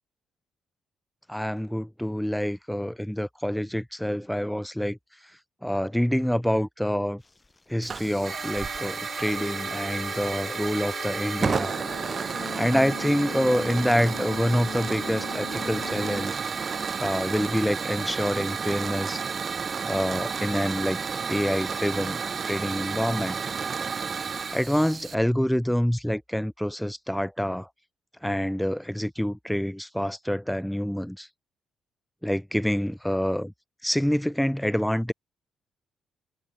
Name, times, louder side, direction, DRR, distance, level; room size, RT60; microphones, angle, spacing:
voice 1, 1.3-5.0 5.6-7.2 7.7-11.8 12.6-16.7 17.0-19.2 19.8-21.0 21.3-22.2 22.5-23.4 24.5-27.7 28.2-31.3 32.2-33.5 33.8-35.1, equal, ahead, 0.3 m, -27 dB
sound 1, 7.2-23.7, left 2 dB, 20° left, 7.0 m, -62 dB
Hiss / Fire, 7.8-25.1, right 6 dB, 40° right, 0.7 m, -31 dB
sound 2, 8.3-16.3, left 11 dB, 75° left, 2.5 m, -40 dB
cardioid pair, 90°, 0 cm